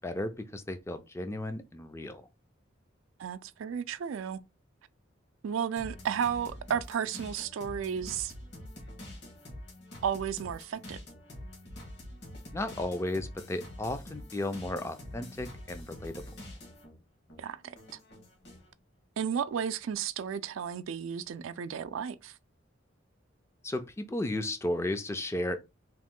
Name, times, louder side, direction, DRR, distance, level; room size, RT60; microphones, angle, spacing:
voice 1, 0.0-2.3 12.5-16.2 23.6-25.6, left 1 dB, 15° left, 0.3 m, -34 dB
voice 2, 3.2-4.4 5.4-8.3 10.0-11.0 17.4-17.8 19.2-22.4, right 7 dB, 90° right, 0.4 m, -33 dB
sound 1, 5.8-17.0 17.3-18.7, left 1 dB, 55° left, 1.3 m, -46 dB
3.0 x 2.5 x 3.6 m
head